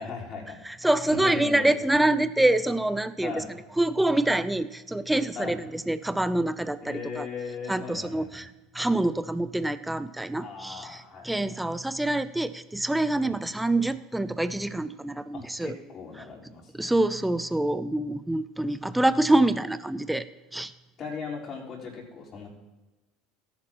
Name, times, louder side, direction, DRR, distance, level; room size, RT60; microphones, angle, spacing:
voice 1, 0.0-1.7 3.2-3.5 5.3-5.6 6.8-8.5 10.4-11.4 13.2-13.4 15.3-16.9 21.0-22.5, left 5 dB, 40° left, -4 dB, 4.3 m, -38 dB
voice 2, 0.6-3.4 3.8-7.3 7.7-8.5 8.7-15.8 16.8-20.3 20.5-20.7, right 1 dB, 5° right, 14 dB, 0.6 m, -26 dB
18.0 x 11.0 x 3.0 m, 1.1 s
figure-of-eight pair, 70°, 0 cm